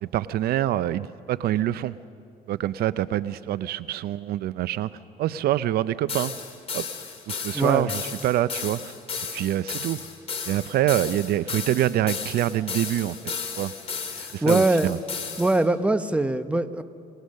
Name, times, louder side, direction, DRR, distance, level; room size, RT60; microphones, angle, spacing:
voice 1, 0.0-1.9 2.5-4.9 5.2-6.4 6.7-6.8 7.3-8.9 9.3-10.1 10.5-13.7 14.3-15.0, right 13 dB, 70° right, 16 dB, 0.5 m, -25 dB
sound 1, 6.1-15.6, left 5 dB, 35° left, 2.8 m, -34 dB
voice 2, 7.5-7.9 14.2-14.9 15.4-16.8, right 2 dB, 5° right, 11 dB, 0.8 m, -22 dB
28.0 x 19.0 x 6.5 m, 2.4 s
cardioid pair, 110°, 17 cm